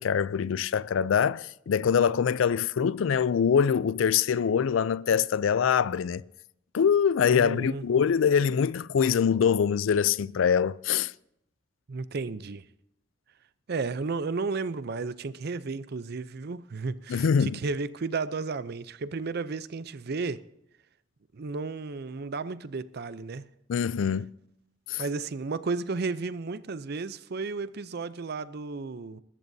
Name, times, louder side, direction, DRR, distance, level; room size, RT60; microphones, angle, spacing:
voice 1, 0.0-6.2 6.7-11.1 17.1-17.6 23.7-24.3 24.9-25.0, left 7 dB, 80° left, 0.4 m, -24 dB
voice 2, 7.3-7.8 11.9-12.6 13.7-20.4 21.3-23.4 25.0-29.2, right 4 dB, 55° right, 0.5 m, -33 dB
20.0 x 13.5 x 2.7 m
head